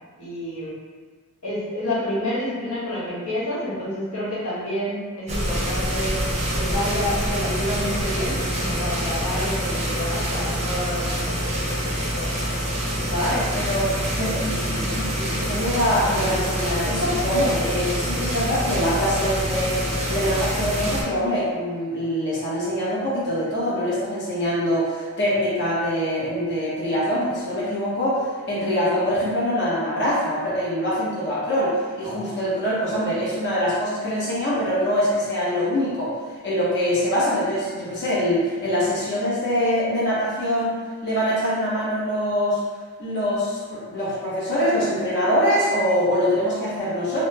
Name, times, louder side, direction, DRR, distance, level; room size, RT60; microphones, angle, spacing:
voice 1, 0.2-0.7 1.4-6.1 6.5-11.8 12.1-12.3 32.4-32.5, left 1 dB, 80° left, -9 dB, 1.3 m, -29 dB
sound 1, 5.3-21.0, equal, 30° right, 0.5 m, -26 dB
voice 2, 12.9-36.2 36.4-40.7 41.0-42.6 43.0-47.2, equal, 55° left, -8 dB, 0.8 m, -24 dB
3.0 x 2.0 x 3.2 m, 1.5 s
head